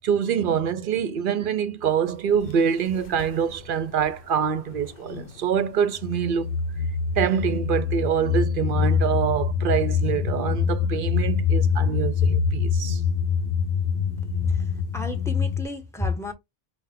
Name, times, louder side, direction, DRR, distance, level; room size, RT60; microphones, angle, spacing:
voice 1, 0.0-6.5 7.2-13.0, right 7 dB, 60° right, 0.7 m, -25 dB
sound 1, 2.3-2.5 3.0-4.1 4.5-5.4 6.0-15.7, left 6 dB, 65° left, 0.7 m, -25 dB
voice 2, 14.4-16.3, left 3 dB, 5° left, 1.0 m, -30 dB
5.6 x 2.1 x 3.5 m
omnidirectional pair, 1.1 m